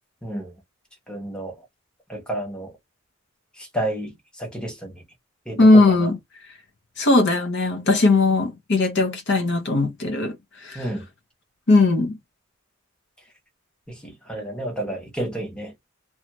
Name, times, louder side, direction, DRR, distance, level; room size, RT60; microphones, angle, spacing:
voice 1, 0.2-0.5 1.1-1.6 2.1-2.7 3.6-5.0 5.5-6.1 10.7-11.1 13.9-15.7, right 1 dB, 5° left, 0.9 m, -31 dB
voice 2, 5.6-6.2 7.0-10.4 10.6-10.8 11.7-12.2, left 2 dB, 60° left, 0.7 m, -18 dB
2.7 x 2.3 x 3.0 m
head